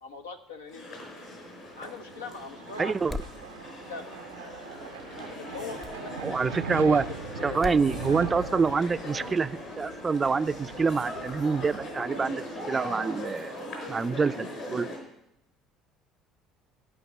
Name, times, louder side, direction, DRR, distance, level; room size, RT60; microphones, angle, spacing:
voice 1, 0.0-1.0 1.7-2.9 3.9-4.1 5.2-6.4 6.7-8.6, left 3 dB, 80° left, 6 dB, 1.0 m, -42 dB
sound 1, 0.7-15.0, left 1 dB, 65° left, 5.0 m, -40 dB
sound 2, 1.6-12.8, right 6 dB, 80° right, 0.5 m, -42 dB
voice 2, 2.8-3.2 6.2-7.0 7.4-13.6 13.9-14.9, right 4 dB, 25° right, 15 dB, 0.4 m, -26 dB
sound 3, 3.1-3.4 5.8-6.0 7.6-7.9, left 4 dB, 30° left, 1.0 m, -36 dB
12.5 x 5.8 x 9.2 m, 0.80 s
figure-of-eight pair, 60°, 0 cm